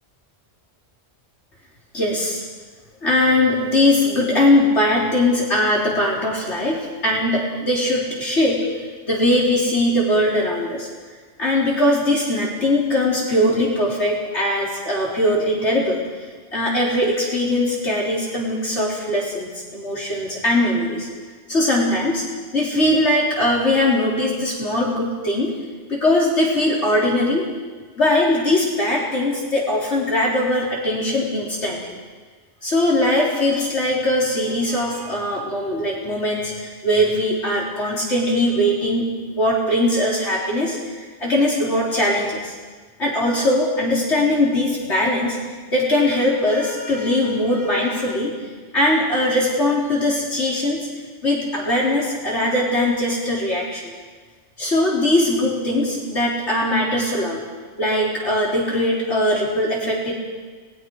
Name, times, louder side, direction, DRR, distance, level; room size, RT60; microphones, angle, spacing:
voice 1, 1.9-2.4 3.0-6.8 7.0-8.7 9.1-10.9 11.4-16.0 16.5-21.1 21.5-22.2 22.5-25.5 25.9-27.4 28.0-31.8 32.6-39.1 39.3-42.5 43.0-45.4 45.7-48.3 48.7-50.9 51.2-53.8 54.6-57.4 57.8-60.1, left 1 dB, 75° left, -4 dB, 4.0 m, -20 dB
30.0 x 21.0 x 4.7 m, 1.5 s
omnidirectional pair, 1.2 m